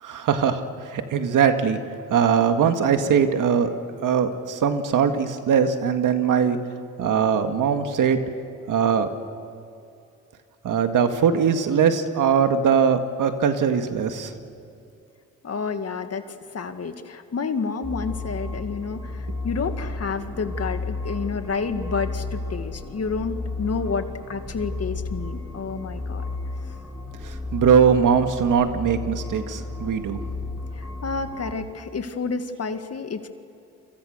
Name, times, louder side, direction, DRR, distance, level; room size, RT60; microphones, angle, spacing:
voice 1, 0.0-1.8 2.1-3.7 4.0-6.6 7.0-8.2 8.7-9.1 10.6-14.3 27.2-30.2, right 7 dB, 70° right, 7 dB, 2.0 m, -21 dB
voice 2, 15.4-26.2 30.7-33.3, left 5 dB, 50° left, 7 dB, 2.1 m, -30 dB
sound 1, 17.8-31.5, left 2 dB, 5° right, 6.4 m, -33 dB
29.5 x 25.5 x 6.6 m, 2.6 s
cardioid pair, 70°, 32 cm